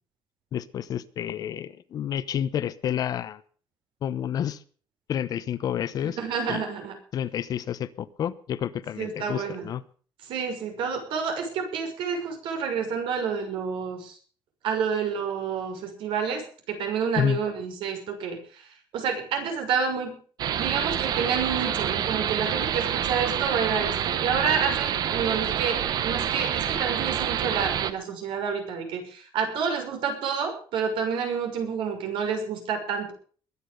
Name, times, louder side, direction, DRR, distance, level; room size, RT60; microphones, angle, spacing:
voice 1, 0.5-3.4 4.0-4.6 5.1-6.2 6.5-6.6 7.1-9.8 17.2-17.4, left 9 dB, 50° left, 1.0 m, -29 dB
voice 2, 6.0-7.0 9.0-9.7 10.2-14.2 14.6-18.7 18.9-20.2 20.6-33.1, right 6 dB, 80° right, 6.1 m, -29 dB
sound 1, 20.4-27.9, right 9 dB, 50° right, 1.0 m, -27 dB
21.5 x 10.0 x 5.3 m
cardioid pair, 175°, 8 cm